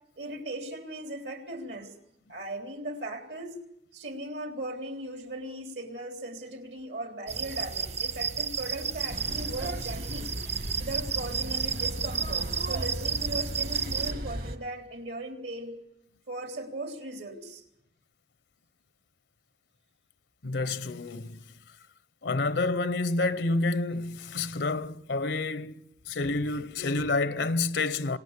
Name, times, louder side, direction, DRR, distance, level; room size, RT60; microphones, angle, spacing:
voice 1, 0.2-1.9 2.3-3.6 3.9-10.3 10.8-15.7 16.3-17.6, right 1 dB, 75° right, 3.7 m, -38 dB
sound 1, 7.3-14.1, right 6 dB, 40° right, 1.0 m, -32 dB
sound 2, 9.1-14.6, right 1 dB, 55° right, 2.0 m, -36 dB
voice 2, 20.4-21.4 22.2-28.2, left 3 dB, 80° left, 0.8 m, -29 dB
26.5 x 18.5 x 8.2 m
head